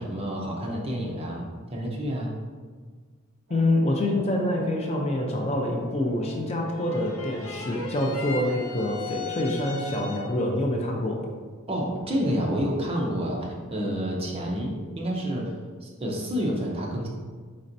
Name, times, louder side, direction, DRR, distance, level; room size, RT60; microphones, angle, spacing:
voice 1, 0.0-1.4 1.7-2.3 11.7-15.5 15.8-17.1, equal, 25° right, -2 dB, 0.7 m, -29 dB
voice 2, 3.5-11.2, left 1 dB, 30° left, 0 dB, 0.5 m, -26 dB
Brass instrument, 3.5-7.7, left 2 dB, 50° right, 1.1 m, -43 dB
sound 1, 6.7-10.5, left 4 dB, 80° left, 0.6 m, -37 dB
4.3 x 4.2 x 2.6 m, 1.5 s
head